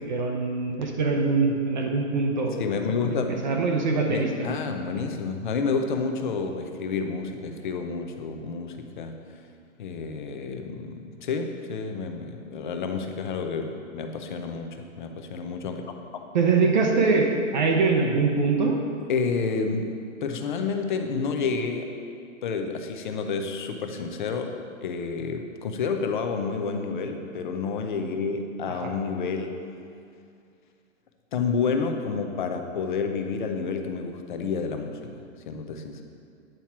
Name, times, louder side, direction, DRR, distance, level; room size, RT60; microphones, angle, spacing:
voice 1, 0.1-2.5 3.4-4.3 16.3-18.8 28.8-28.9, right 4 dB, 35° right, 2 dB, 0.6 m, -23 dB
voice 2, 2.6-3.5 4.1-9.2 9.8-16.2 19.1-21.9 22.4-29.6 31.3-36.0, left 5 dB, 40° left, 5 dB, 0.6 m, -30 dB
9.0 x 4.4 x 5.8 m, 2.4 s
hypercardioid pair, 170°, 39 cm